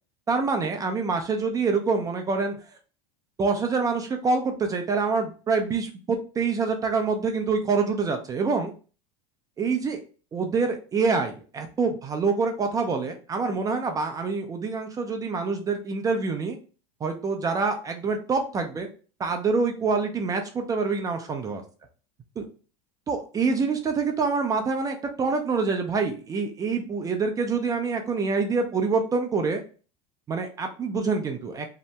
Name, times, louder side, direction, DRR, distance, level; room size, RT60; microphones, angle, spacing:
voice 1, 0.3-2.5 3.4-8.7 9.6-10.0 10.3-16.6 17.0-18.9 19.2-21.6 22.4-22.5 23.1-29.6 30.3-31.7, right 4 dB, 20° right, 5 dB, 0.4 m, -26 dB
2.7 x 2.1 x 3.2 m, 0.38 s
supercardioid pair, 120°, 16 cm